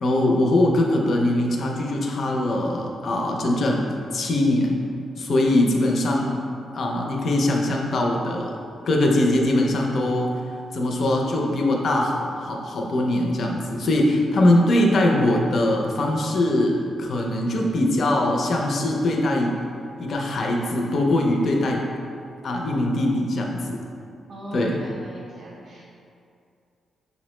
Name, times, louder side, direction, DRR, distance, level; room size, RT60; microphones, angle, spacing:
voice 1, 0.0-3.9 4.1-4.8 5.2-6.3 6.7-8.6 8.9-10.3 10.7-19.5 20.0-21.9 22.4-23.8 24.5-24.8, left 1 dB, 50° left, 0 dB, 0.4 m, -22 dB
voice 2, 24.3-25.8, equal, 50° right, -5 dB, 0.5 m, -38 dB
5.2 x 2.0 x 3.0 m, 2.5 s
wide cardioid pair, 155°, 0 cm